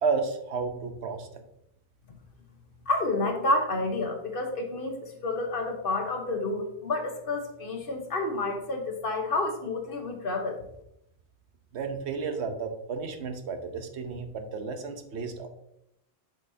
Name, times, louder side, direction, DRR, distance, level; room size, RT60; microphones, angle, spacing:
voice 1, 0.0-1.4 11.7-15.5, right 5 dB, 90° right, 7 dB, 1.1 m, -32 dB
voice 2, 2.9-10.6, left 2 dB, 55° left, 4 dB, 1.2 m, -29 dB
7.4 x 5.3 x 2.7 m, 0.79 s
omnidirectional pair, 1.1 m